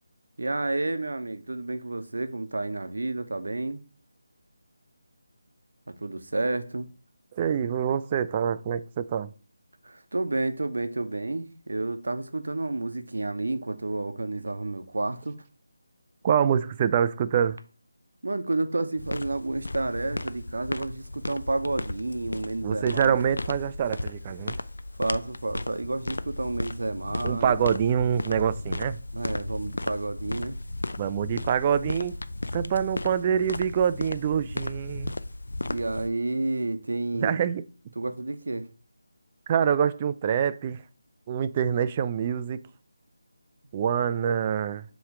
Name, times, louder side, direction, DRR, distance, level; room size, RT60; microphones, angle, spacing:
voice 1, 0.4-3.8 5.9-6.9 9.8-15.4 18.2-23.2 25.0-27.6 29.1-30.6 35.7-37.4 38.0-38.7, right 2 dB, 75° right, 0.8 m, -30 dB
voice 2, 7.3-9.3 16.2-17.6 22.6-24.6 27.2-29.0 31.0-32.2 32.5-35.1 37.2-37.6 39.5-40.8 41.3-42.6 43.7-44.8, right 8 dB, 25° right, 0.3 m, -25 dB
sound 1, 19.0-36.1, left 2 dB, 80° left, 0.4 m, -35 dB
7.1 x 3.1 x 4.9 m
figure-of-eight pair, 165°, 0 cm